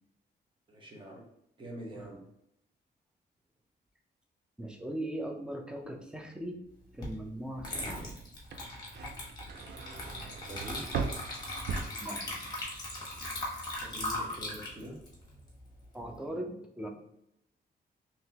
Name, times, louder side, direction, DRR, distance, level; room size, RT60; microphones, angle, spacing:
voice 1, 0.7-1.2 1.6-2.2 10.5-11.0 13.8-15.0, right 1 dB, 30° right, -1 dB, 1.0 m, -44 dB
voice 2, 4.6-6.6 6.9-8.2 11.9-12.3 15.9-16.9, right 1 dB, 5° right, 3 dB, 0.5 m, -39 dB
Water / Liquid, 7.0-7.2 7.6-16.1, left 1 dB, 25° left, 1.1 m, -39 dB
sound 1, 8.4-12.7 13.0-13.5, right 5 dB, 90° right, 0.4 m, -39 dB
3.7 x 2.9 x 2.8 m, 0.78 s
wide cardioid pair, 165°, 17 cm